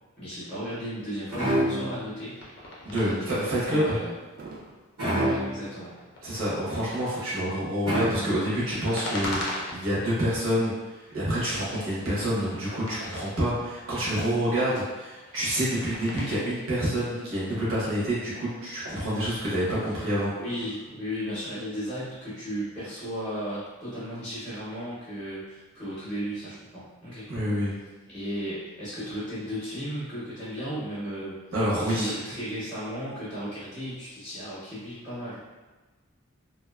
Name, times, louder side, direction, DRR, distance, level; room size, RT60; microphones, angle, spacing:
voice 1, 0.2-2.4 3.0-4.1 5.2-5.9 19.1-19.3 20.3-27.3 28.1-31.4 31.7-35.4, equal, 5° left, -13 dB, 0.6 m, -35 dB
sound 1, 1.3-2.2 5.0-5.7 7.9-8.6, equal, 90° right, 0.9 m, -27 dB
sound 2, 2.2-3.1 3.7-5.0 5.7-6.9 8.4-10.2 10.7-11.3 11.5-13.7 14.5-16.4, left 1 dB, 50° left, 0.5 m, -39 dB
voice 2, 2.8-4.0 6.2-10.7 11.1-20.3 27.3-27.7 31.5-32.1, equal, 60° right, -8 dB, 0.7 m, -27 dB
sound 3, 4.3-4.8 6.6-7.1 9.0-9.8 11.1-12.0, right 2 dB, 40° right, 0.3 m, -43 dB
2.5 x 2.2 x 2.3 m, 1.2 s
head